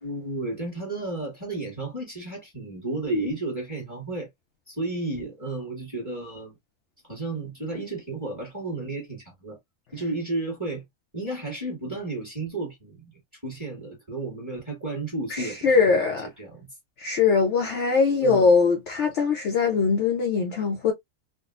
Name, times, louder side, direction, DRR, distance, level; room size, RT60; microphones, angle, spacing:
voice 1, 0.0-4.3 4.7-6.6 7.0-9.6 9.9-10.8 11.1-13.0 13.4-16.7 18.2-18.5, right 2 dB, 10° right, 1.5 m, -32 dB
voice 2, 15.3-16.3 17.0-20.9, left 5 dB, 65° left, 0.8 m, -21 dB
3.6 x 2.3 x 2.4 m
omnidirectional pair, 1.5 m